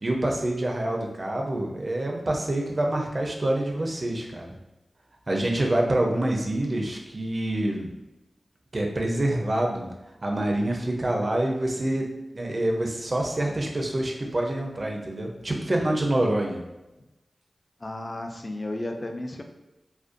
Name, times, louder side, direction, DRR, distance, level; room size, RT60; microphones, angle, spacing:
voice 1, 0.0-4.5 5.3-7.9 8.7-9.9 10.2-16.6, right 1 dB, 45° right, 0 dB, 0.4 m, -26 dB
voice 2, 17.8-19.4, left 1 dB, 40° left, 4 dB, 0.3 m, -33 dB
2.5 x 2.1 x 2.5 m, 0.98 s
cardioid pair, 50°, 0 cm